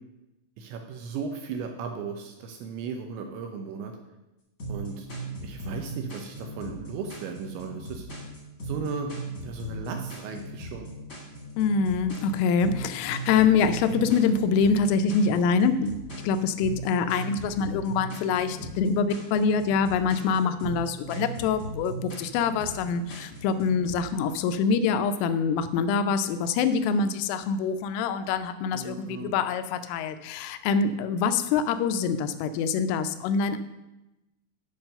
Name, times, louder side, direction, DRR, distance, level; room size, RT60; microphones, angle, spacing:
voice 1, 0.6-3.9 4.7-5.1 5.4-8.1 8.6-9.1 9.4-10.9 18.6-18.7 28.7-29.3, right 5 dB, 80° right, 4 dB, 2.8 m, -36 dB
sound 1, 4.6-24.1, right 2 dB, 35° left, 1.4 m, -38 dB
voice 2, 11.6-33.6, left 5 dB, 85° left, 10 dB, 3.1 m, -25 dB
8.8 x 5.5 x 6.6 m, 0.99 s
omnidirectional pair, 5.8 m